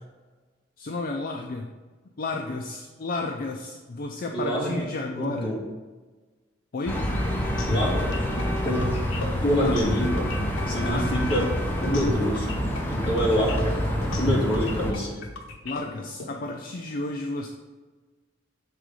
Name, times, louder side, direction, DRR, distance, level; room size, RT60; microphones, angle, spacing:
voice 1, 0.8-1.7 2.2-5.6 6.7-7.0 9.6-9.8 10.7-11.1 15.6-17.5, left 2 dB, 45° left, 2 dB, 0.5 m, -32 dB
voice 2, 4.3-4.9 5.2-5.6 7.6-8.9 9.4-10.3 10.7-11.5 11.8-12.5 12.9-13.8 14.2-15.2, equal, 25° left, -4 dB, 1.8 m, -26 dB
sound 1, 6.9-14.9, equal, 10° left, 0.8 m, -27 dB
sound 2, 7.6-16.3, left 2 dB, 80° left, 0.8 m, -33 dB
6.7 x 3.7 x 4.8 m, 1.3 s
head